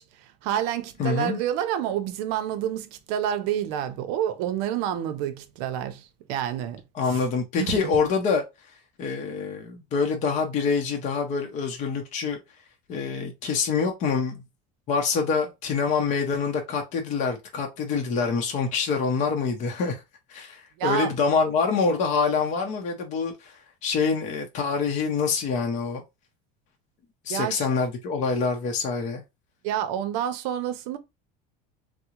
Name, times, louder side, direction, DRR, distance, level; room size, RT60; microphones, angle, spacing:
voice 1, 0.0-6.8 7.1-7.2 7.6-7.8 20.8-21.1 27.3-27.7 29.6-31.0, right 10 dB, 70° right, 0.6 m, -28 dB
voice 2, 1.0-1.4 7.0-8.4 9.0-12.4 12.9-14.4 14.9-20.0 20.3-26.0 27.2-29.2, left 5 dB, 35° left, 0.6 m, -26 dB
3.6 x 2.0 x 2.9 m
cardioid pair, 155°, 20 cm